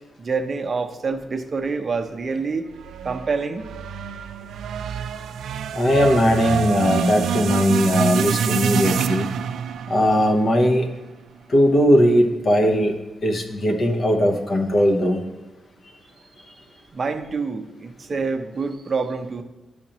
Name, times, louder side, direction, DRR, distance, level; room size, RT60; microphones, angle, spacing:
voice 1, 0.2-2.6 3.0-3.7 16.9-19.4, right 4 dB, 40° right, 5 dB, 0.7 m, -26 dB
sound 1, 2.8-11.1, right 8 dB, 85° right, 0.3 m, -26 dB
voice 2, 5.7-9.3 9.9-10.9 11.5-15.2, equal, 45° left, 4 dB, 0.9 m, -19 dB
11.0 x 5.1 x 3.0 m, 1.1 s
cardioid pair, 115°, 0 cm